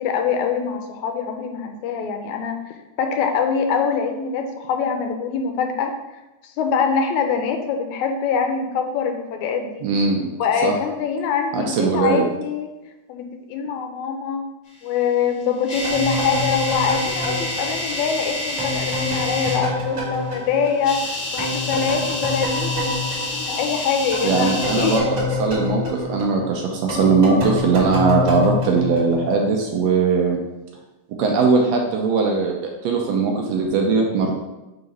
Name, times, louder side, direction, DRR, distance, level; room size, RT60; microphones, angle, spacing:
voice 1, 0.0-2.6 3.0-5.9 6.4-9.8 10.4-12.7 13.1-14.4 14.8-25.1, left 6 dB, 80° left, 5 dB, 1.9 m, -24 dB
voice 2, 9.8-10.3 10.6-10.7 11.5-12.3 24.2-25.1 25.4-30.4 31.2-32.6 32.8-34.3, right 4 dB, 75° right, 1 dB, 1.7 m, -19 dB
sound 1, 15.2-19.6 20.7-25.0, left 2 dB, 65° left, 0.8 m, -28 dB
sound 2, 15.8-21.1 21.4-29.6, left 2 dB, 40° right, 1.4 m, -27 dB
4.9 x 3.9 x 5.2 m, 1.0 s
omnidirectional pair, 3.4 m